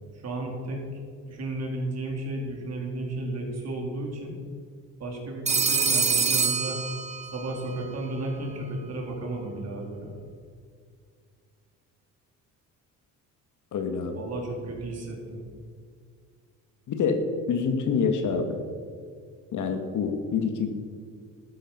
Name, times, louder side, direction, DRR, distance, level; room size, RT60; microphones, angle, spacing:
voice 1, 0.1-4.3 5.0-6.8 7.3-10.2 14.1-15.4, right 2 dB, 50° right, 0 dB, 3.3 m, -33 dB
Telephone, 5.5-7.5, right 5 dB, 20° right, 0.8 m, -25 dB
voice 2, 13.7-14.2 16.9-17.2 17.5-18.6 19.5-20.7, left 5 dB, 65° left, 6 dB, 1.7 m, -26 dB
13.0 x 9.9 x 5.6 m, 2.1 s
cardioid pair, 115°, 33 cm